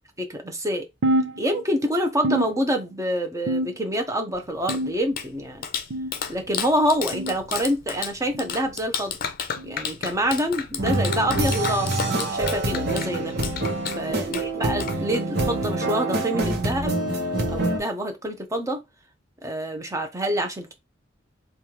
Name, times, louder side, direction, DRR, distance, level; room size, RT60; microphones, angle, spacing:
voice 1, 0.2-0.8 1.4-5.7 6.3-9.2 9.6-13.3 14.0-16.9 17.5-18.8 19.4-20.7, equal, 15° right, 0.8 m, -26 dB
sound 1, 1.0-1.9 2.2-3.0 3.5-4.1 4.7-5.3 5.9-6.3 7.1-7.4 8.3-8.6 9.6-9.8 10.8-11.0 12.0-12.2 13.2-13.4 14.4-14.5 15.7-15.8, right 1 dB, 80° right, 0.6 m, -28 dB
Clapping, 4.3-15.5, left 7 dB, 50° left, 0.6 m, -33 dB
sound 2, 10.8-17.8, right 2 dB, 60° right, 1.1 m, -26 dB
3.4 x 2.4 x 4.4 m
head